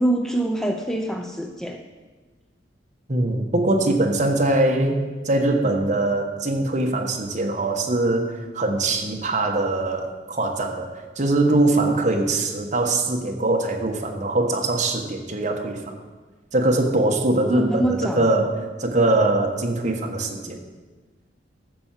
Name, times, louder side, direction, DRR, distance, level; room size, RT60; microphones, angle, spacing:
voice 1, 0.0-1.8 17.5-18.3, right 1 dB, 5° left, 4 dB, 0.6 m, -24 dB
voice 2, 3.1-5.0 5.2-15.9 16.5-20.6, right 2 dB, 40° right, 2 dB, 1.4 m, -22 dB
12.0 x 6.9 x 7.5 m, 1.3 s
head